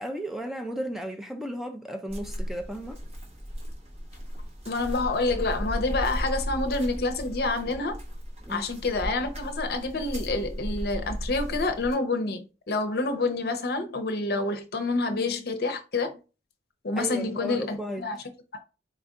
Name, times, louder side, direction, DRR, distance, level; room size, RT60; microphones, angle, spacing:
voice 1, 0.0-3.0 8.4-8.7 17.0-18.0, equal, ahead, 0.4 m, -34 dB
sound 1, 2.1-11.9, equal, 35° right, 1.3 m, -35 dB
voice 2, 4.7-8.0 8.5-16.2 16.8-18.2, left 3 dB, 60° left, 0.7 m, -28 dB
4.2 x 2.6 x 3.5 m
head